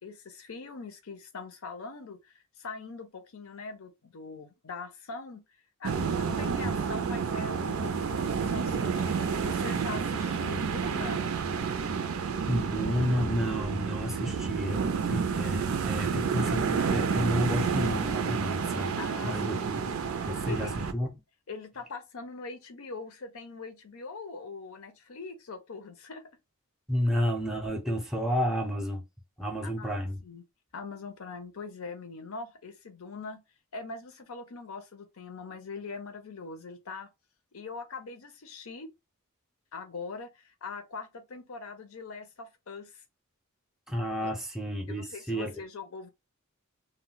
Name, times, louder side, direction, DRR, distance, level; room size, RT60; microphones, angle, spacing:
voice 1, 0.0-5.4 5.8-11.2 19.0-19.7 20.4-20.7 21.5-26.2 29.8-30.4 30.7-33.4 33.7-37.1 37.5-38.9 39.7-43.0 44.2-44.3 44.9-46.1, left 4 dB, 70° left, 0.6 m, -42 dB
sound 1, 5.8-20.9, right 6 dB, 65° right, 0.4 m, -30 dB
voice 2, 12.5-14.8 15.1-19.9 20.2-21.1 26.9-29.1 29.4-30.2 43.9-45.5, equal, ahead, 0.6 m, -31 dB
2.2 x 2.1 x 3.8 m
head